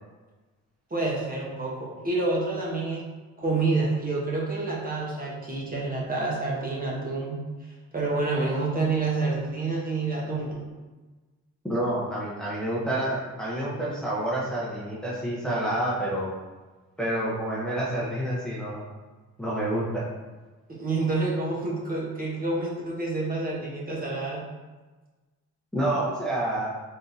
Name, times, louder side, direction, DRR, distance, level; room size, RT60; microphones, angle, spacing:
voice 1, 0.9-3.1 3.4-7.4 7.9-10.7 20.7-24.4, right 3 dB, 30° right, -4 dB, 1.1 m, -28 dB
voice 2, 11.7-16.3 17.0-18.8 19.4-20.1 25.7-26.7, right 1 dB, ahead, -7 dB, 0.9 m, -28 dB
3.7 x 3.6 x 2.7 m, 1.3 s
cardioid pair, 90°, 30 cm